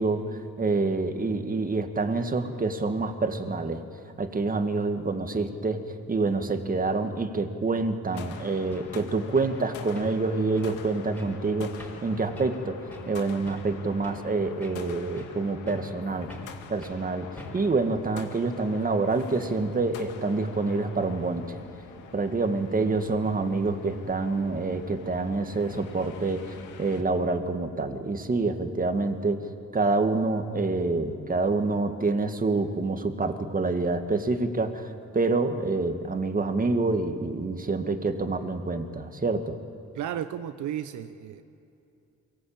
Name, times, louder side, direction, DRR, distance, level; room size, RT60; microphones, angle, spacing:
voice 1, 0.0-3.8 4.2-12.8 13.1-16.3 16.7-21.6 22.1-29.4 29.7-39.6, right 3 dB, 30° right, 1.9 m, -27 dB
sound 1, 7.7-7.8 8.1-8.3 8.7-8.9 9.3-9.6 9.9-10.3 10.5-10.8 11.1-11.4 11.8-12.1 12.3-12.6 12.9-13.1 13.5-14.3 14.6-15.4 15.7-16.0 16.3-16.5 16.8-17.0 17.4-17.7, equal, 5° left, 5.2 m, -44 dB
sound 2, 8.1-27.0, left 7 dB, 90° left, 2.2 m, -45 dB
voice 2, 39.9-41.4, right 10 dB, 75° right, 0.9 m, -33 dB
23.0 x 18.5 x 8.8 m
cardioid pair, 90°, 30 cm